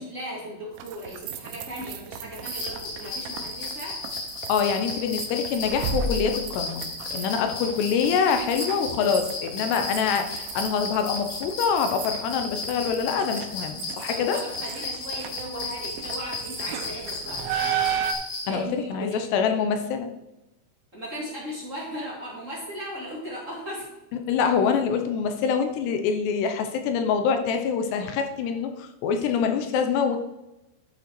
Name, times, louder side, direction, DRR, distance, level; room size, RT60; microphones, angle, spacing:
voice 1, 0.0-3.9 8.2-8.4 14.1-17.4 18.4-19.2 20.9-23.9, equal, 50° right, -6 dB, 0.9 m, -37 dB
sound 1, 0.8-18.1, right 7 dB, 90° right, 3.2 m, -35 dB
sound 2, 2.4-18.5, left 3 dB, 60° left, 3.2 m, -35 dB
voice 2, 4.5-6.8 7.1-14.4 18.5-20.1 24.3-30.2, left 6 dB, 80° left, 6 dB, 2.7 m, -25 dB
12.0 x 5.4 x 4.5 m, 0.96 s
omnidirectional pair, 5.3 m